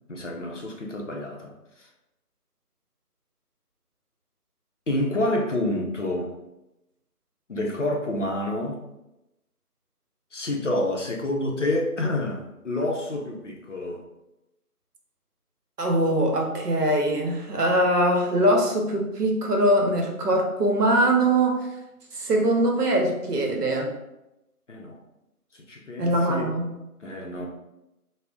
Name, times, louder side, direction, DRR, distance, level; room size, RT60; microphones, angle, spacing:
voice 1, 0.1-1.9 4.9-6.3 7.5-8.8 10.3-14.0 24.7-25.0 25.5-26.5 27.0-27.5, left 1 dB, 55° left, 0 dB, 0.5 m, -28 dB
voice 2, 15.8-21.7 22.1-23.9 26.0-26.7, right 1 dB, 85° right, 1 dB, 0.8 m, -22 dB
2.4 x 2.0 x 3.5 m, 0.92 s
figure-of-eight pair, 165°, 46 cm